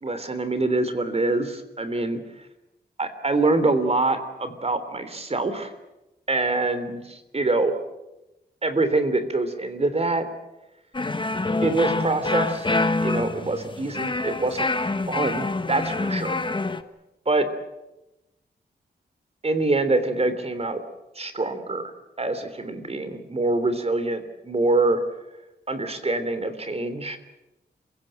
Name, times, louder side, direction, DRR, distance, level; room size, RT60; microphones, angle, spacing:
voice 1, 0.0-2.2 3.0-5.7 6.3-7.7 8.6-10.3 11.6-12.8 13.0-14.7 15.1-16.4 17.2-17.5 19.4-20.8 21.1-21.9 22.2-25.0 25.7-27.2, right 2 dB, 35° right, 10 dB, 3.3 m, -25 dB
sound 1, 10.9-16.8, left 2 dB, 30° left, 1.4 m, -26 dB
28.5 x 17.0 x 8.9 m, 0.97 s
wide cardioid pair, 85°, 17 cm